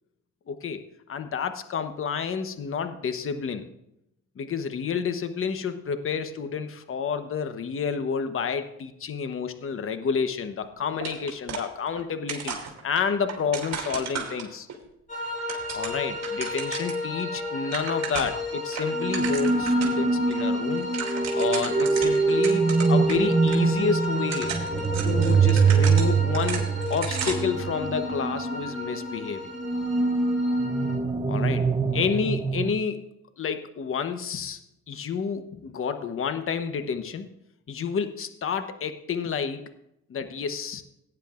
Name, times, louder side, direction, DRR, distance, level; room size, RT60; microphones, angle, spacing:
voice 1, 0.5-0.8 1.1-3.6 4.4-12.6 12.8-14.7 15.7-20.9 21.3-24.6 25.0-29.4 31.3-31.7 31.9-33.1 33.4-34.6 34.9-37.3 37.7-39.7 40.1-40.8, left 6 dB, 45° left, 8 dB, 1.1 m, -30 dB
sound 1, 11.0-12.0 12.3-14.8 15.2-17.0 17.4-17.5 17.6-18.4 18.7-20.0 20.3-20.4 20.7-23.2 23.5-23.6 24.1-27.5, right 6 dB, 60° right, 3.0 m, -35 dB
sound 2, 15.1-31.0, left 2 dB, 25° left, 2.9 m, -33 dB
sound 3, 18.9-32.7, right 4 dB, 15° right, 0.8 m, -24 dB
17.5 x 9.9 x 2.5 m, 0.80 s
cardioid pair, 90°, 30 cm